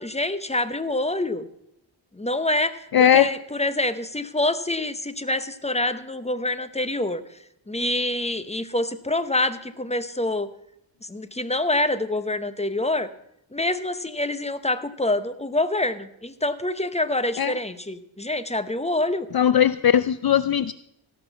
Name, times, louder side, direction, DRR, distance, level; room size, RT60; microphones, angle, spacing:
voice 1, 0.0-1.5 2.2-7.2 7.7-10.5 11.0-13.1 13.5-19.3, left 2 dB, 15° left, 12 dB, 0.8 m, -26 dB
voice 2, 2.9-3.3 17.4-17.6 19.3-20.7, left 9 dB, 50° left, 15 dB, 0.5 m, -19 dB
17.0 x 6.0 x 6.9 m, 0.78 s
wide cardioid pair, 80°, 47 cm